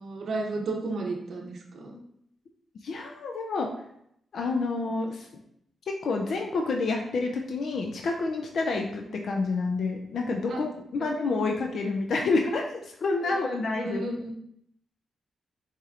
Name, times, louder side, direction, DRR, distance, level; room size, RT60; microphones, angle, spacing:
voice 1, 0.0-2.0 9.1-9.2 10.5-10.6 11.0-11.1 11.5-11.6 13.3-14.3, right 2 dB, 70° right, 1 dB, 0.7 m, -34 dB
voice 2, 2.8-3.7 4.3-5.3 5.9-14.0, left 3 dB, 70° left, 2 dB, 0.4 m, -28 dB
4.7 x 2.9 x 2.4 m, 0.74 s
cardioid pair, 70°, 0 cm